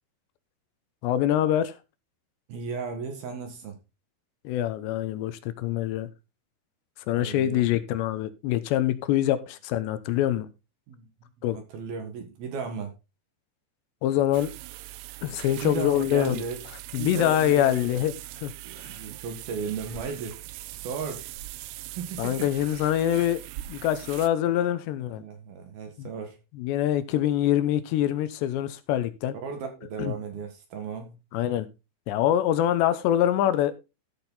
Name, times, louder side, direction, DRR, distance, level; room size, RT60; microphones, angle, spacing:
voice 1, 1.0-1.7 4.4-6.1 7.1-10.5 11.4-11.6 14.0-14.5 15.2-16.4 16.9-18.1 18.4-18.5 22.2-23.4 23.7-25.2 26.0-26.1 26.6-29.4 30.0-30.1 31.3-31.7 32.1-33.8, left 12 dB, 80° left, 2.9 m, -24 dB
voice 2, 2.5-3.8 7.1-7.7 10.9-12.9 15.6-16.6 17.0-18.1 18.6-20.4 20.7-21.3 22.0-22.5 25.1-26.4 29.3-31.2, right 6 dB, 60° right, 3.2 m, -35 dB
sound 1, 14.3-24.3, right 17 dB, 80° right, 2.7 m, -41 dB
13.5 x 6.7 x 3.9 m
omnidirectional pair, 5.3 m